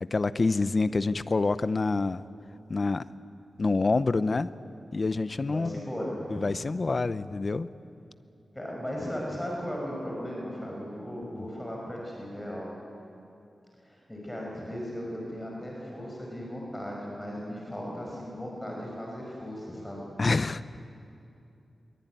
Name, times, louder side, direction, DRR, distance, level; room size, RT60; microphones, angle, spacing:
voice 1, 0.0-2.2 2.7-3.0 3.6-4.5 4.9-5.8 6.3-7.7 11.4-11.5 20.2-20.6, left 3 dB, 40° left, 13 dB, 0.7 m, -27 dB
voice 2, 5.4-6.7 8.5-12.7 13.8-20.0, equal, 10° left, -2 dB, 5.6 m, -37 dB
23.5 x 23.0 x 9.3 m, 2.7 s
wide cardioid pair, 110°, 0 cm